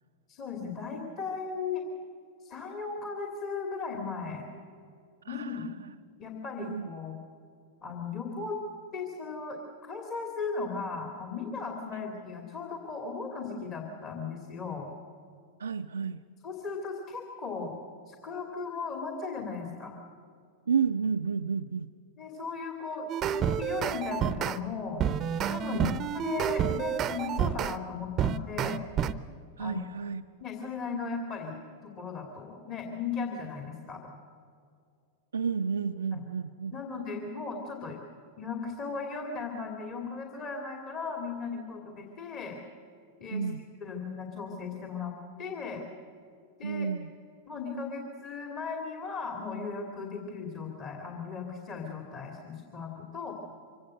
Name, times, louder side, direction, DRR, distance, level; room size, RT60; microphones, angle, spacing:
voice 1, 0.3-1.8 2.4-4.5 5.3-5.7 6.2-7.2 7.8-8.6 8.9-14.9 16.4-17.7 18.1-20.0 22.2-25.0 25.4-28.8 29.6-29.8 30.4-34.0 36.1-36.2 36.7-38.0 38.4-42.6 43.2-43.5 43.8-45.1 45.4-45.8 46.6-46.9 47.5-53.3, left 4 dB, 35° left, 2 dB, 2.5 m, -37 dB
voice 2, 5.2-5.7 6.6-6.9 15.6-16.2 20.7-21.9 25.7-26.0 29.6-30.2 35.3-36.8 43.3-43.6 46.6-47.1, right 6 dB, 70° right, 6 dB, 0.5 m, -31 dB
sound 1, 23.1-24.6 25.0-27.8 28.2-29.1, right 8 dB, 30° right, 0.7 m, -29 dB
24.5 x 17.0 x 7.8 m, 2.3 s
figure-of-eight pair, 90°, 0 cm